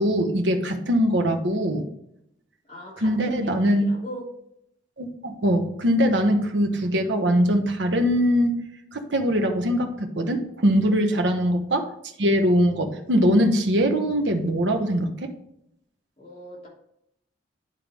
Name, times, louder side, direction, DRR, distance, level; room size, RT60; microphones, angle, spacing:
voice 1, 0.0-1.8 3.0-3.8 5.0-8.6 8.9-11.9 12.2-15.3, equal, 75° right, 4 dB, 1.0 m, -22 dB
voice 2, 2.6-4.3 11.1-11.3 16.2-16.7, left 1 dB, 30° left, -5 dB, 2.9 m, -39 dB
11.0 x 3.8 x 3.4 m, 0.75 s
head